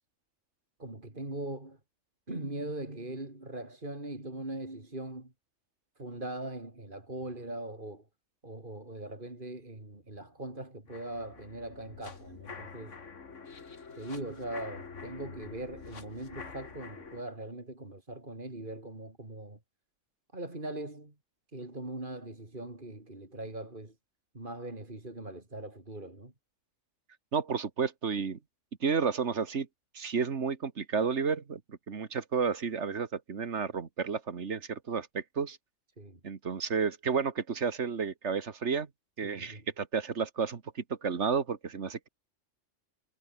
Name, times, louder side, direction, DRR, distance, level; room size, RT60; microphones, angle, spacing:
voice 1, 0.8-1.8 2.3-5.3 6.0-8.1 8.4-13.0 14.0-19.6 20.3-21.1 21.5-23.9 24.3-26.3 36.0-36.2 39.2-39.7, right 2 dB, 40° right, 4.1 m, -41 dB
sound 1, 10.9-17.2, left 5 dB, 70° left, 2.3 m, -46 dB
voice 2, 27.3-28.4 28.8-29.7 29.9-35.6 36.2-38.9 39.2-42.1, right 5 dB, 60° right, 1.9 m, -31 dB
omnidirectional pair, 1.3 m